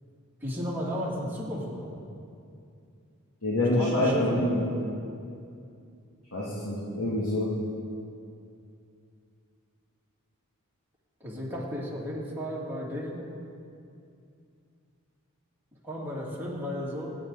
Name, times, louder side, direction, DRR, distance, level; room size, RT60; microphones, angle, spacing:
voice 1, 0.4-1.9 3.6-4.5 11.2-13.2 15.8-17.1, equal, 10° right, -6 dB, 2.6 m, -34 dB
voice 2, 3.4-4.6 6.3-7.5, left 1 dB, 75° left, -8 dB, 2.7 m, -26 dB
26.0 x 8.7 x 4.1 m, 2.5 s
head